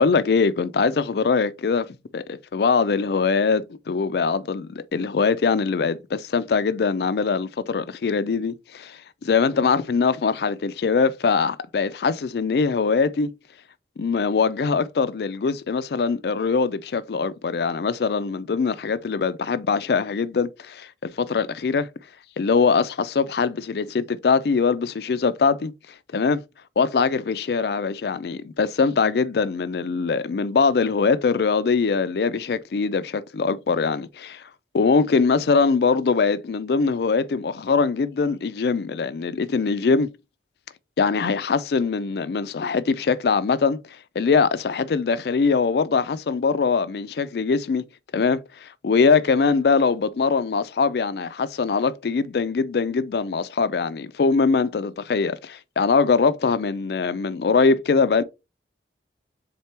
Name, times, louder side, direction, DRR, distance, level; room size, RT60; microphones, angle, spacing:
voice 1, 0.0-1.9 2.1-13.3 14.0-21.9 22.4-25.7 26.1-26.4 26.8-34.4 34.7-40.1 41.0-43.8 44.2-47.8 48.1-58.2, left 5 dB, 60° left, 0.4 m, -22 dB
4.4 x 3.7 x 3.3 m
head